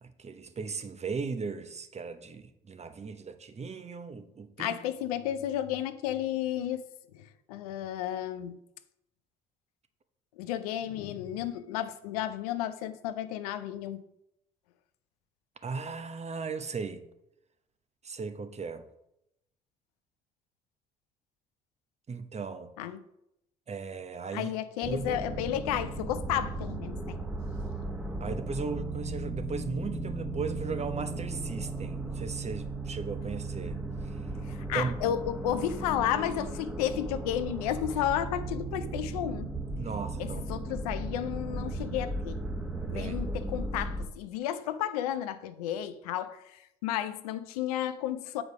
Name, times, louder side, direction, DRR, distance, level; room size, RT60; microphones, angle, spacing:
voice 1, 0.0-4.8 15.6-17.0 18.0-18.8 22.1-22.7 23.7-24.5 24.8-25.3 28.2-34.2 34.7-34.9 39.8-40.6 42.8-43.2, right 5 dB, 35° right, 0.9 m, -37 dB
voice 2, 4.6-6.8 7.1-8.6 10.4-14.0 22.8-23.0 24.3-27.2 34.5-39.5 40.2-42.4 42.9-48.4, left 11 dB, 85° left, 0.5 m, -32 dB
sound 1, 24.8-44.1, right 2 dB, 5° right, 1.4 m, -36 dB
7.9 x 4.9 x 4.8 m
hypercardioid pair, 45°, 19 cm